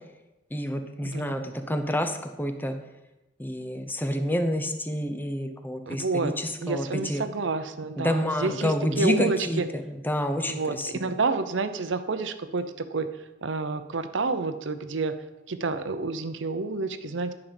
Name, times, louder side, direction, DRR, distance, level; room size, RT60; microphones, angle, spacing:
voice 1, 0.5-2.8 3.4-7.2 8.0-10.9, left 1 dB, 10° left, 6 dB, 0.7 m, -28 dB
voice 2, 1.0-1.3 5.9-6.3 6.6-9.7 10.5-13.1 13.4-15.1 15.5-17.3, right 3 dB, 70° right, 10 dB, 0.6 m, -29 dB
9.7 x 5.3 x 5.2 m, 1.0 s
head